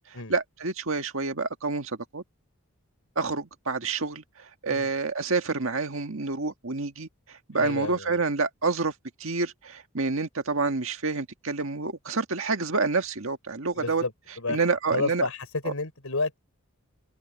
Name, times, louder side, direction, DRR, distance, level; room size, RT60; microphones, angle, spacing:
voice 1, 0.3-2.2 3.2-4.2 4.6-8.9 9.2-14.0 14.5-15.3 15.7-15.8, right 4 dB, 70° right, 1.7 m, -28 dB
voice 2, 7.6-8.2 13.7-14.6 14.9-16.4, left 3 dB, 85° left, 4.2 m, -31 dB
head